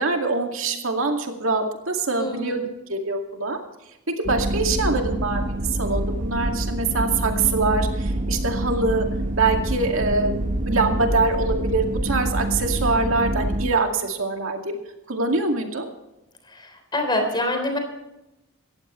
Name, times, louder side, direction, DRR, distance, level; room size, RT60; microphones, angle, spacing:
voice 1, 0.0-2.6 2.9-3.6 4.1-5.4 5.8-9.1 9.4-10.4 10.7-14.8 15.1-15.9, right 3 dB, 70° right, 3 dB, 2.3 m, -24 dB
voice 2, 2.2-2.7 16.5-16.7 16.9-17.8, left 1 dB, 20° left, 4 dB, 3.7 m, -25 dB
sound 1, 4.2-13.7, right 1 dB, 40° right, 1.0 m, -26 dB
18.5 x 15.0 x 3.2 m, 0.93 s
head